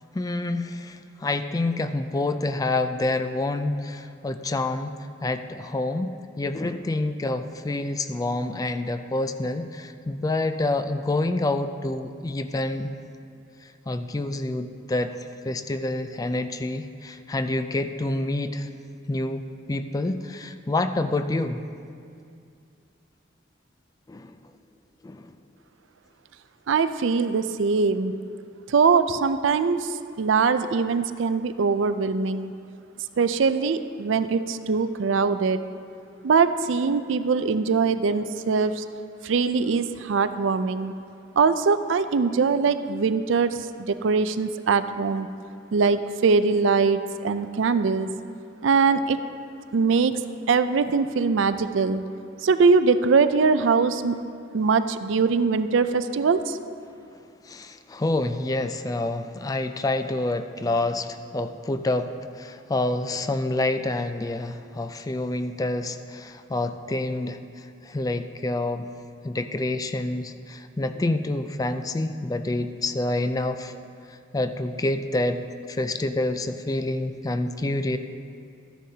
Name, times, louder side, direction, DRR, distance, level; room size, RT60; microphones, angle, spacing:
voice 1, 0.1-12.9 13.6-18.7 19.1-19.4 19.7-21.6 24.1-24.4 25.0-25.4 57.4-68.9 69.2-73.7 74.1-78.0, left 2 dB, 20° left, 9 dB, 0.3 m, -28 dB
voice 2, 26.7-28.1 28.7-29.9 30.2-32.5 33.2-35.6 36.2-38.8 39.2-40.9 41.4-43.6 43.9-45.3 45.7-48.1 48.6-49.2 49.7-50.2 50.5-52.0 52.4-54.2 54.5-56.6, right 5 dB, 75° right, 11 dB, 0.4 m, -22 dB
14.0 x 10.0 x 2.8 m, 2.4 s
head